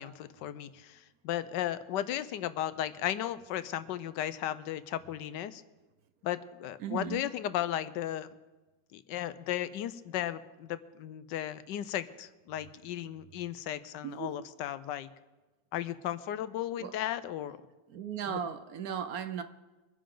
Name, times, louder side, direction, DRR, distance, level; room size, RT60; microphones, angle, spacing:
voice 1, 0.0-5.6 6.2-8.3 8.9-15.1 15.7-17.6 18.3-18.4, left 12 dB, 80° left, 1.3 m, -35 dB
voice 2, 6.8-7.3 14.0-14.5 16.8-17.0 17.9-19.4, right 8 dB, 65° right, 1.1 m, -37 dB
24.0 x 10.0 x 3.8 m
omnidirectional pair, 1.9 m